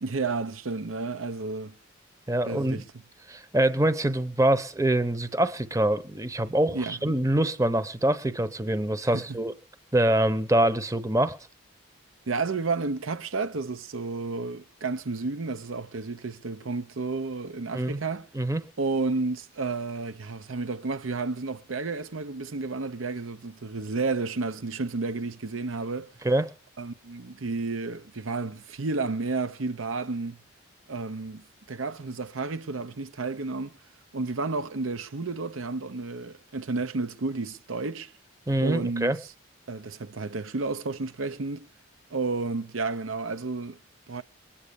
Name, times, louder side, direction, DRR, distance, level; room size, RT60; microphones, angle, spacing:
voice 1, 0.0-1.8 2.5-2.9 6.7-7.0 9.1-9.4 12.3-18.3 18.8-26.1 26.8-30.4 30.9-33.8 34.1-38.1 38.6-39.1 39.7-41.7 42.1-43.8 44.1-44.2, right 3 dB, 80° right, 0.8 m, -31 dB
voice 2, 2.3-2.8 3.3-9.5 9.9-11.4 17.7-18.0 18.3-18.6 26.2-26.5 38.5-39.2, right 1 dB, 15° right, 0.8 m, -25 dB
21.5 x 8.8 x 6.8 m
head